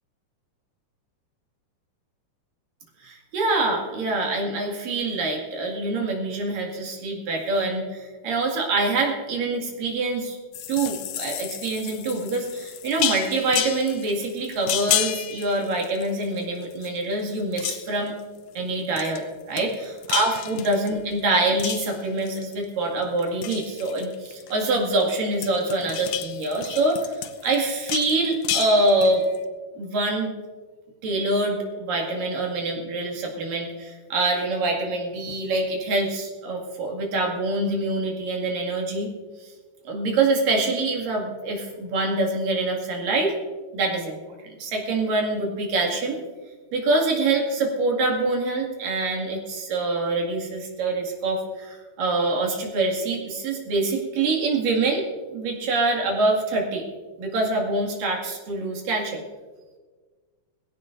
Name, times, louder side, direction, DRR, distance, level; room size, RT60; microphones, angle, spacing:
voice 1, 3.0-10.4 10.7-18.1 18.6-29.2 29.8-30.3 31.0-39.1 39.4-39.5 39.9-43.3 43.7-44.2 44.6-46.2 46.7-55.1 55.3-56.8 57.2-59.2, right 2 dB, 90° right, -1 dB, 3.9 m, -25 dB
sound 1, 10.5-16.4 16.7-17.3 17.5-18.1 19.0-19.2 19.6-21.1 21.6-22.7 23.0-25.0 25.3-29.4, left 12 dB, 80° left, 2.2 m, -31 dB
20.0 x 16.5 x 2.6 m, 1.4 s
omnidirectional pair, 3.8 m